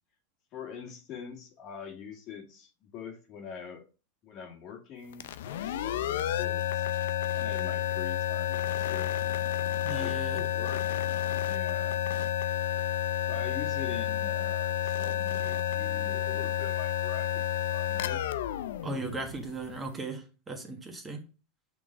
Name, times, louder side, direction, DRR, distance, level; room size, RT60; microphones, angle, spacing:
voice 1, 0.5-3.9 4.2-6.8 7.3-9.2 9.9-11.0 11.3-12.1 13.3-17.4 17.7-18.2, left 7 dB, 45° left, 2.0 m, -44 dB
sound 1, 5.1-19.7, left 11 dB, 70° left, 0.5 m, -30 dB
voice 2, 9.8-10.4 18.8-21.2, right 3 dB, 15° right, 1.5 m, -37 dB
6.0 x 3.8 x 4.9 m
hypercardioid pair, 105°, 0 cm